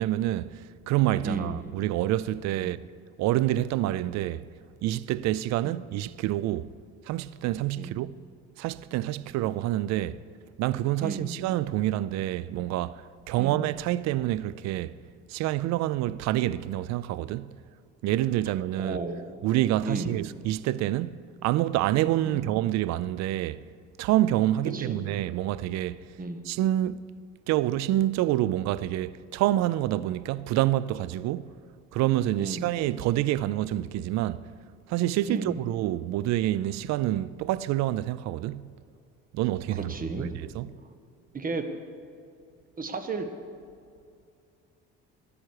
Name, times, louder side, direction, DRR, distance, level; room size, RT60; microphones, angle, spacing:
voice 1, 0.0-2.8 3.2-4.5 4.8-6.7 7.1-8.1 8.6-10.2 10.6-14.9 15.3-17.6 18.0-19.0 19.4-23.6 24.0-26.0 26.5-27.0 27.5-31.5 31.9-34.4 34.9-38.7 39.3-39.9 40.2-40.3 40.6-40.7, right 14 dB, 65° right, 0.4 m, -27 dB
voice 2, 1.2-1.7 2.6-2.7 5.6-5.8 7.7-7.9 11.0-11.4 13.4-13.7 18.7-19.2 19.8-20.2 22.2-22.5 24.7-25.1 26.2-26.5 32.4-32.7 35.3-35.6 39.9-40.3 41.3-41.6 42.8-43.3, right 3 dB, 30° right, 1.3 m, -34 dB
13.5 x 10.0 x 4.8 m
supercardioid pair, 80°, 29 cm